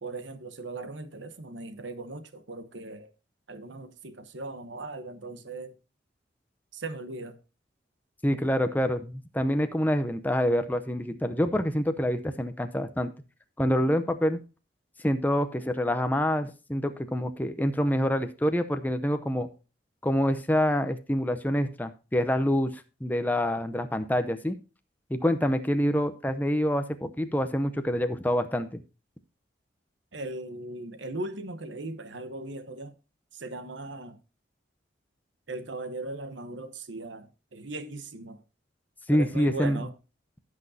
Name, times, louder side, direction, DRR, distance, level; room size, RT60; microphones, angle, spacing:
voice 1, 0.0-3.1 3.5-5.8 6.7-7.4 30.1-33.0 33.3-34.2 35.5-38.4 39.1-39.9, right 2 dB, 75° right, 1.1 m, -38 dB
voice 2, 8.2-13.1 13.6-14.4 15.0-19.5 20.0-24.6 25.1-28.8 39.1-39.8, equal, 10° left, 0.7 m, -26 dB
16.0 x 6.1 x 2.8 m
head